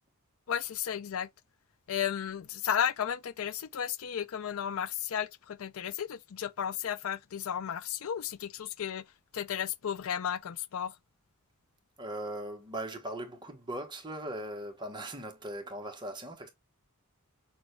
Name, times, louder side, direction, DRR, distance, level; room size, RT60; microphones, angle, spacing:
voice 1, 0.5-1.3 1.9-9.0 9.3-10.9, left 9 dB, 65° left, 0.4 m, -33 dB
voice 2, 12.0-16.5, right 1 dB, 20° right, 1.1 m, -39 dB
6.2 x 2.3 x 3.2 m
head